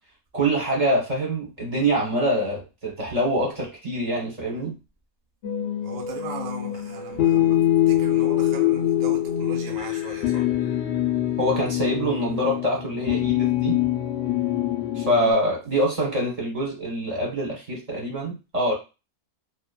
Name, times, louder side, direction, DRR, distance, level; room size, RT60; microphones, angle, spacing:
voice 1, 0.3-4.7 11.4-13.8 14.9-18.7, right 1 dB, 35° right, 0.7 m, -25 dB
sound 1, 5.4-15.3, left 13 dB, 75° left, 0.5 m, -24 dB
voice 2, 5.8-7.6 7.9-10.5, right 4 dB, 70° right, 0.4 m, -38 dB
2.8 x 2.2 x 2.2 m
omnidirectional pair, 1.6 m